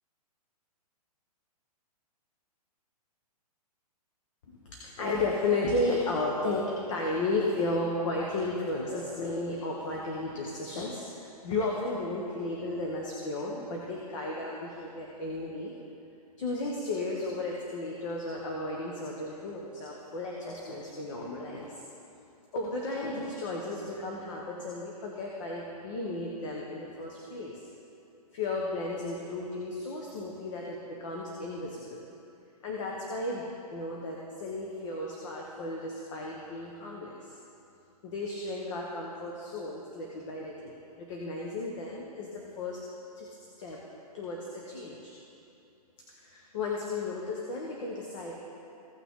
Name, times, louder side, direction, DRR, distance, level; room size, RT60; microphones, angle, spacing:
voice 1, 4.5-15.7 16.4-21.8 22.5-27.6 28.3-32.0 32.6-33.4 33.7-37.3 38.0-42.8 43.2-43.3 43.6-43.8 44.1-45.1 46.2-48.3, left 2 dB, 50° left, -2 dB, 1.4 m, -34 dB
16.5 x 6.1 x 3.8 m, 2.8 s
hypercardioid pair, 140°, 20 cm